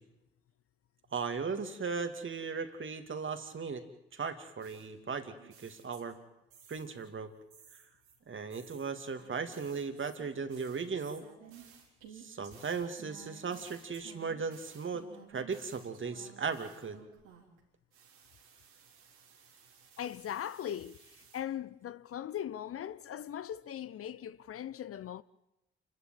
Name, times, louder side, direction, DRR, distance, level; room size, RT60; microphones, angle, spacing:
voice 1, 1.1-3.9 4.1-6.2 6.7-7.3 8.3-11.2 12.1-17.0, right 5 dB, 45° right, 2.5 m, -37 dB
sound 1, 4.6-6.2 6.5-7.1 7.5-17.6 17.9-21.4, right 7 dB, 80° right, 3.8 m, -57 dB
voice 2, 20.0-25.2, left 10 dB, 50° left, 0.7 m, -40 dB
28.5 x 13.0 x 9.2 m
hypercardioid pair, 40°, 29 cm